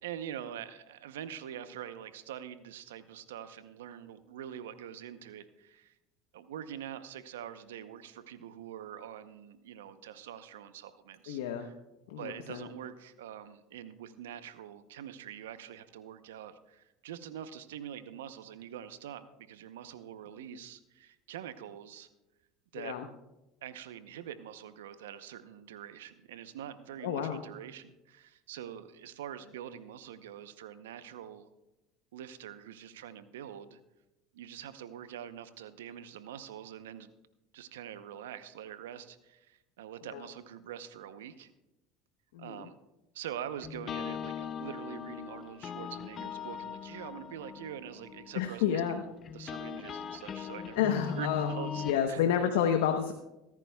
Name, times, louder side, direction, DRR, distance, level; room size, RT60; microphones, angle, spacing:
voice 1, 0.0-6.0 6.3-11.7 12.2-22.1 22.7-23.0 23.6-31.5 32.1-33.8 34.3-37.1 37.5-41.5 42.4-42.8 43.1-49.0 49.3-52.2, right 10 dB, 85° right, 12 dB, 0.7 m, -44 dB
voice 2, 11.3-11.7 12.1-12.7 22.7-23.1 27.0-27.4 40.1-40.2 42.3-42.7 48.4-49.0 50.8-51.5 51.8-53.1, left 9 dB, 80° left, 5 dB, 0.9 m, -30 dB
sound 1, 43.6-52.0, left 7 dB, 40° left, 0.6 m, -40 dB
23.0 x 10.5 x 2.3 m, 0.97 s
hypercardioid pair, 85°, 0 cm